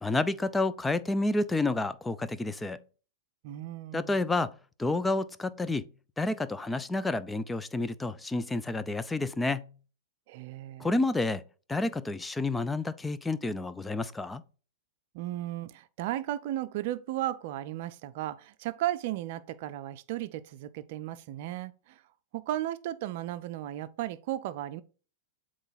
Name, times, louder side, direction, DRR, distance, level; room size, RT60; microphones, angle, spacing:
voice 1, 0.0-2.8 3.9-4.5 4.8-5.9 6.2-9.7 10.8-11.4 11.7-14.4, left 2 dB, 10° left, 0.5 m, -29 dB
voice 2, 3.4-4.3 10.3-10.9 15.1-22.0 22.3-24.8, right 13 dB, 55° right, 0.5 m, -35 dB
7.9 x 3.1 x 4.1 m
figure-of-eight pair, 100°, 0 cm